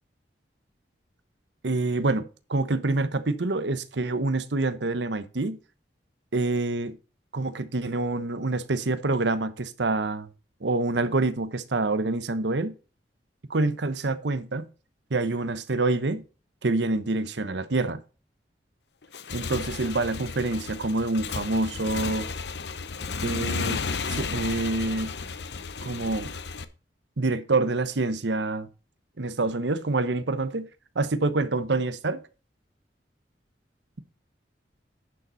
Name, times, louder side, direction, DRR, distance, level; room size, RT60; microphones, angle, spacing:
voice 1, 1.6-5.6 6.3-6.9 7.3-10.3 10.6-12.7 13.5-14.7 15.1-16.2 16.6-18.0 19.3-22.3 23.2-23.8 24.1-25.1 25.8-26.3 27.2-28.7 29.2-30.7 30.9-32.2, right 2 dB, 75° right, 0.9 m, -26 dB
Motorcycle / Engine, 19.0-26.6, left 4 dB, 70° left, 0.8 m, -33 dB
10.5 x 6.9 x 4.0 m
head